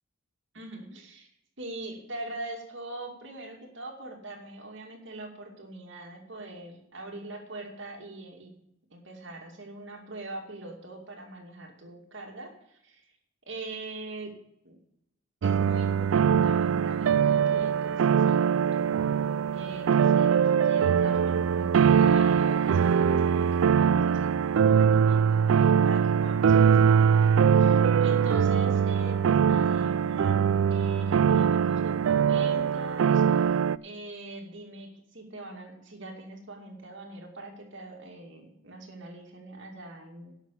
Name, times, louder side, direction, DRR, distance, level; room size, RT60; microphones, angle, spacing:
voice 1, 0.5-1.3 1.6-8.5 8.9-13.0 13.5-14.4 14.6-14.8 15.4-18.9 19.4-33.4 33.8-40.3, right 2 dB, 60° right, 2 dB, 2.5 m, -42 dB
sound 1, 15.4-33.8, right 7 dB, 80° right, 0.4 m, -22 dB
11.5 x 6.3 x 8.2 m, 0.79 s
head